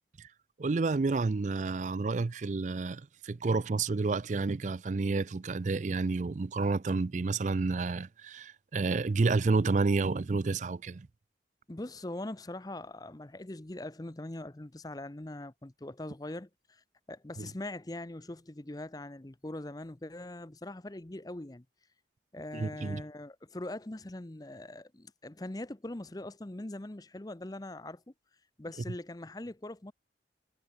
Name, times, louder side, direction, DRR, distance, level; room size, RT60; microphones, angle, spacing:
voice 1, 0.6-11.1 17.4-17.5 22.5-23.0, right 3 dB, 40° right, 0.4 m, -30 dB
voice 2, 11.7-21.6 22.3-28.0 28.6-29.9, left 1 dB, 20° left, 0.7 m, -42 dB
head